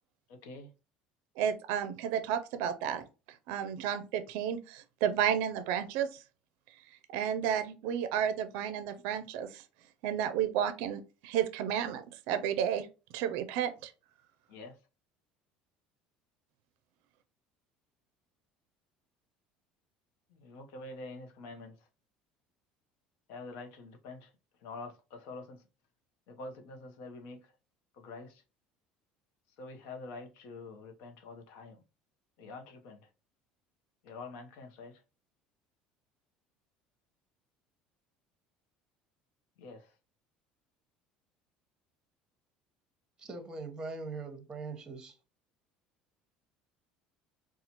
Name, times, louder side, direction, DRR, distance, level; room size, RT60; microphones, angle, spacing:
voice 1, 0.3-0.7 14.5-14.8 20.3-21.7 23.3-24.3 24.6-25.6 26.3-27.4 27.9-28.4 29.6-31.8 32.4-33.1 34.0-35.0 39.6-39.9, left 3 dB, 75° left, 0.8 m, -46 dB
voice 2, 1.4-3.0 3.5-6.2 7.1-9.6 10.0-12.9 13.1-13.9, right 9 dB, 75° right, 0.4 m, -32 dB
voice 3, 43.2-45.2, right 3 dB, 20° right, 0.8 m, -41 dB
4.1 x 2.4 x 2.8 m
cardioid pair, 130°, 3 cm